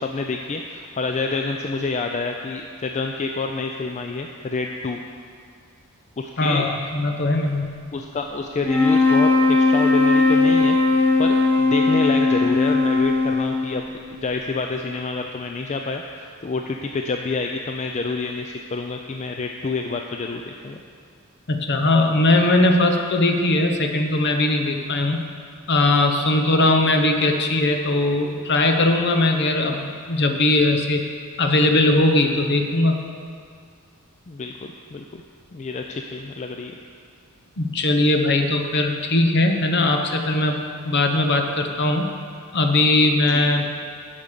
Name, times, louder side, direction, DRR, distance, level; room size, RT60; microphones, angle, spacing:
voice 1, 0.0-5.0 6.2-6.7 7.9-10.8 11.2-20.8 34.3-35.2 35.5-36.8 43.3-43.7, left 3 dB, 35° left, 3 dB, 0.4 m, -28 dB
voice 2, 6.4-7.7 21.5-25.2 25.7-31.0 31.4-33.1 37.6-42.1 42.5-43.6, left 2 dB, 55° left, 4 dB, 0.9 m, -20 dB
sound 1, 8.6-14.0, left 3 dB, 10° left, 1.1 m, -18 dB
11.0 x 5.2 x 6.7 m, 2.3 s
head